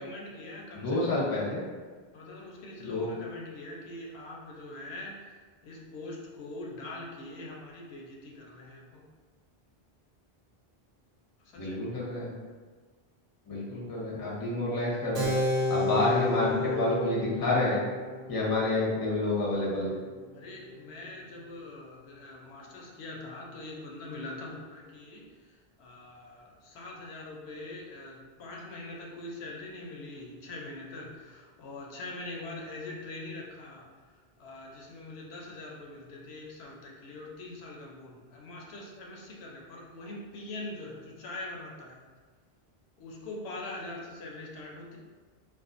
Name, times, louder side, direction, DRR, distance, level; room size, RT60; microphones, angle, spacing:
voice 1, 0.0-1.3 2.1-9.0 11.4-11.8 20.3-42.0 43.0-45.0, left 2 dB, 85° left, -2 dB, 0.8 m, -43 dB
voice 2, 0.7-1.6 2.8-3.1 11.5-12.3 13.5-15.3 15.7-17.8 18.3-19.9, left 2 dB, 25° left, -5 dB, 0.5 m, -28 dB
Keyboard (musical), 15.1-21.3, left 2 dB, 65° right, 0.7 m, -33 dB
2.4 x 2.3 x 2.4 m, 1.5 s
omnidirectional pair, 1.1 m